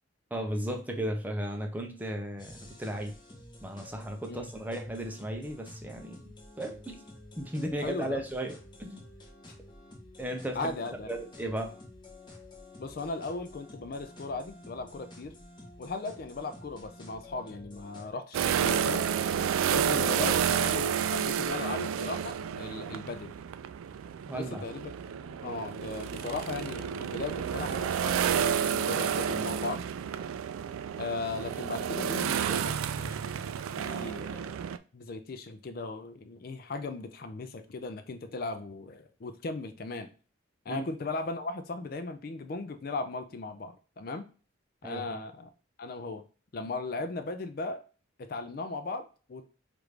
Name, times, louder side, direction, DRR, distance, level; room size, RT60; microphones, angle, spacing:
voice 1, 0.3-3.1 3.6-6.2 6.6-7.0 7.4-9.0 10.2-10.7 11.1-11.7 24.3-24.7 40.7-40.9 44.8-45.2, right 1 dB, 10° right, 3 dB, 0.5 m, -35 dB
sound 1, 2.4-18.1, left 1 dB, 20° left, 0.8 m, -50 dB
voice 2, 7.8-8.2 10.5-11.1 12.8-15.3 15.8-19.1 19.7-23.4 24.3-24.9 25.4-29.8 31.0-33.4 33.8-34.6 34.9-40.1 40.7-44.2 44.8-45.5 45.8-46.2 46.5-47.8 48.2-49.5, left 3 dB, 45° left, 9 dB, 0.4 m, -37 dB
sound 2, 18.3-34.8, right 8 dB, 85° right, 0.3 m, -30 dB
4.8 x 2.5 x 3.2 m, 0.37 s
head